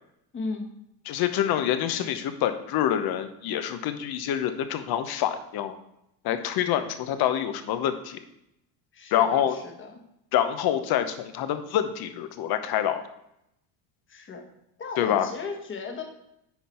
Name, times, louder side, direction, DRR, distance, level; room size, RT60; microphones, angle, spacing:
voice 1, 0.3-0.7 8.9-10.0 14.1-14.4 14.8-16.0, left 4 dB, 25° left, 3 dB, 1.3 m, -36 dB
voice 2, 1.1-5.8 6.2-8.2 9.1-9.5 10.3-13.0 15.0-15.3, left 10 dB, 50° left, 9 dB, 0.9 m, -26 dB
10.0 x 3.9 x 4.3 m, 0.81 s
cardioid pair, 125°, 48 cm